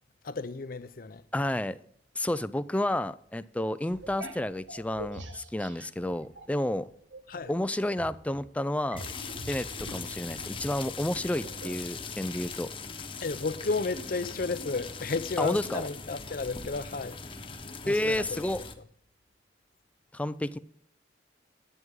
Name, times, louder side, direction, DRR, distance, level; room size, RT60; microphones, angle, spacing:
voice 1, 0.2-1.2 7.3-7.5 13.2-17.2 17.8-18.4, left 4 dB, 50° left, 0.6 m, -33 dB
voice 2, 1.3-1.8 2.2-6.9 7.5-9.0 9.5-12.7 15.4-15.9 17.9-18.6 20.1-20.6, left 1 dB, 10° left, 0.4 m, -30 dB
sound 1, 3.9-6.7 7.1-11.9, right 1 dB, 90° right, 1.3 m, -45 dB
sound 2, 9.0-18.7, left 4 dB, 30° left, 1.1 m, -40 dB
11.0 x 9.2 x 3.7 m
head